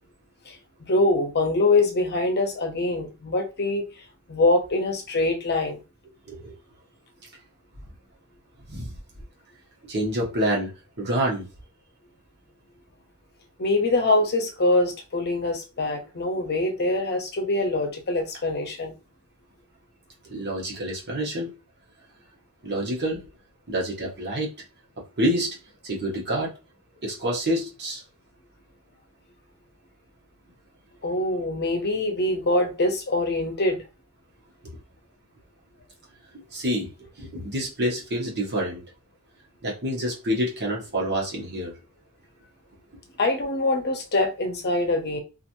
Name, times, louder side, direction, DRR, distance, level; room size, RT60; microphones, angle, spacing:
voice 1, 0.5-3.8 4.3-5.8 13.6-18.9 31.0-33.8 43.2-45.2, left 2 dB, 50° left, 0.7 m, -24 dB
voice 2, 9.9-10.7 11.0-11.5 20.2-21.5 22.6-23.3 23.7-24.5 25.2-25.6 25.8-26.5 27.0-28.0 36.5-38.8 39.6-41.7, right 1 dB, 50° right, 1.1 m, -27 dB
3.0 x 2.5 x 2.6 m
head